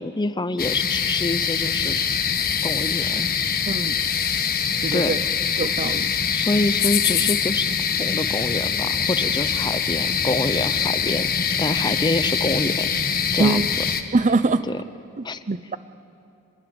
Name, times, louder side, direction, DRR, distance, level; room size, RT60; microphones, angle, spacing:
voice 1, 0.0-2.0 2.6-3.3 4.9-5.1 6.3-7.7 8.0-11.3 11.6-13.6 14.7-14.8 15.2-15.4, left 2 dB, 20° left, 12 dB, 0.7 m, -26 dB
sound 1, 0.6-14.0, left 7 dB, 40° left, 1.3 m, -23 dB
voice 2, 3.7-4.0 4.8-5.2 5.6-6.1 13.4-13.7 14.1-14.6 15.2-15.8, right 3 dB, 35° right, 14 dB, 0.6 m, -23 dB
27.5 x 22.0 x 8.0 m, 2.7 s
head